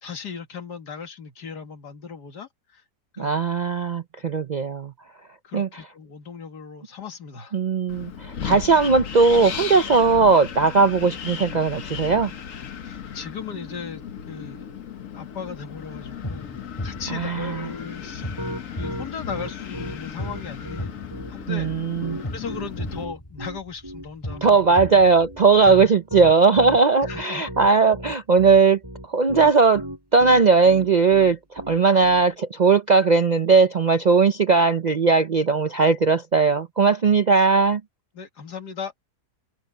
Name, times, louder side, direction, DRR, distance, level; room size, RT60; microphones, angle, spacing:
voice 1, 0.0-2.8 3.1-3.4 5.4-7.6 12.8-14.7 15.1-16.5 16.8-18.3 18.7-21.0 21.3-21.7 22.3-25.0 25.6-25.8 27.0-27.4 38.1-38.9, left 6 dB, 85° left, 2.4 m, -37 dB
voice 2, 3.2-4.9 5.5-5.7 7.5-12.3 17.1-17.7 21.5-22.2 24.4-28.8 29.1-29.8 30.1-37.8, right 4 dB, 75° right, 0.4 m, -18 dB
Wind, 7.9-23.0, left 8 dB, 55° left, 1.4 m, -36 dB
sound 1, 16.1-25.7, left 1 dB, 15° left, 3.5 m, -37 dB
Piano, 18.0-32.2, equal, 15° right, 5.7 m, -35 dB
omnidirectional pair, 1.7 m